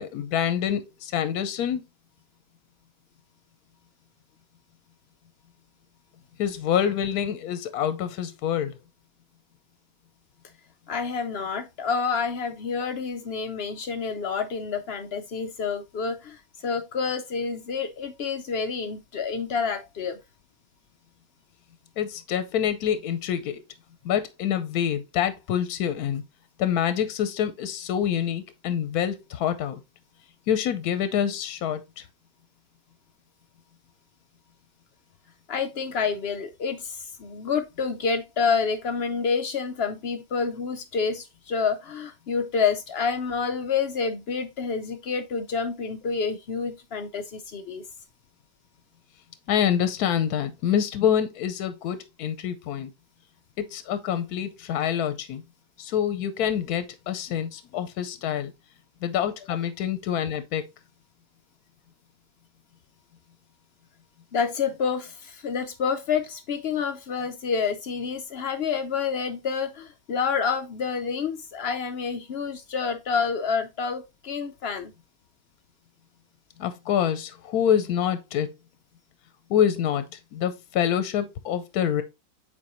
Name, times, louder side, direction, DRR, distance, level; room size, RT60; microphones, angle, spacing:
voice 1, 0.0-1.8 6.4-8.8 22.0-23.6 24.0-26.2 26.6-29.8 30.5-32.0 49.5-52.9 53.6-55.4 55.8-58.5 59.0-60.7 76.6-78.5 79.5-80.0 80.3-82.0, left 9 dB, 85° left, 1.2 m, -26 dB
voice 2, 10.9-20.2 35.5-47.8 64.3-74.9, left 5 dB, 60° left, 0.7 m, -28 dB
7.5 x 4.3 x 2.9 m
omnidirectional pair, 1.6 m